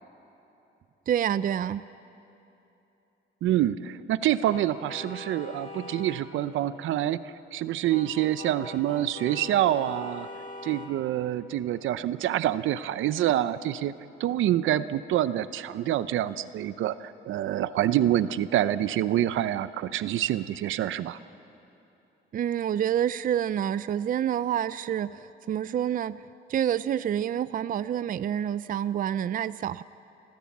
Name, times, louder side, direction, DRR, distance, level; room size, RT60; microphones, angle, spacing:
voice 1, 1.1-1.8 22.3-26.2 26.5-29.8, right 10 dB, 45° right, 15 dB, 0.4 m, -28 dB
voice 2, 3.4-10.3 10.6-13.9 14.2-21.2, right 12 dB, 80° right, 14 dB, 0.7 m, -26 dB
sound 1, 4.5-6.2 7.9-10.9, left 2 dB, 45° left, 3.5 m, -42 dB
29.0 x 14.5 x 7.3 m, 3.0 s
cardioid pair, 90°, 20 cm